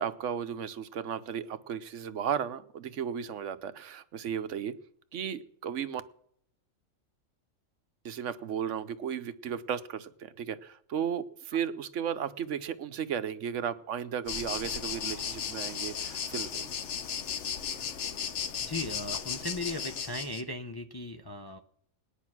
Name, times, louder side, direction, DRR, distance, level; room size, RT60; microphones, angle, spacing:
voice 1, 0.0-4.7 5.1-6.0 8.0-16.7, right 8 dB, 70° right, 12 dB, 1.1 m, -35 dB
sound 1, 14.3-20.4, left 7 dB, 65° left, 1.1 m, -35 dB
voice 2, 18.6-21.6, left 1 dB, 30° left, 5 dB, 0.5 m, -37 dB
18.5 x 10.0 x 6.0 m, 0.68 s
omnidirectional pair, 1.3 m